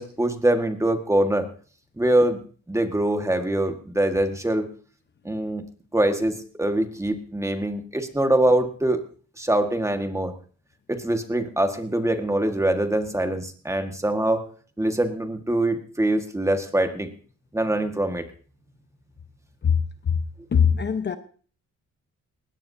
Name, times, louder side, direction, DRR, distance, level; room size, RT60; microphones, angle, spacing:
voice 1, 0.0-1.5 2.0-2.4 2.7-4.7 5.2-5.6 5.9-9.0 9.4-10.3 10.9-14.4 14.8-17.1 17.5-18.3, right 1 dB, 10° right, 1.8 m, -23 dB
voice 2, 19.6-20.2 20.5-21.2, left 7 dB, 35° left, 1.1 m, -22 dB
19.5 x 17.5 x 2.8 m
cardioid pair, 110°, 29 cm